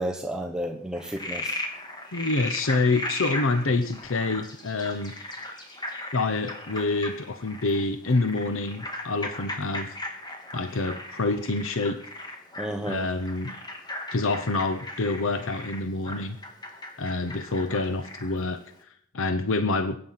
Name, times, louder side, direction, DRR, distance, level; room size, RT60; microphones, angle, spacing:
voice 1, 0.0-1.6 12.6-13.0, right 1 dB, 5° right, 1 dB, 1.1 m, -31 dB
Frog, 1.0-18.4, left 1 dB, 20° left, 2.8 m, -37 dB
voice 2, 2.1-5.1 6.1-10.0 10.5-12.0 12.9-13.6 14.1-16.4 17.0-20.0, left 3 dB, 65° left, 10 dB, 0.9 m, -27 dB
22.0 x 9.7 x 5.8 m, 0.63 s
head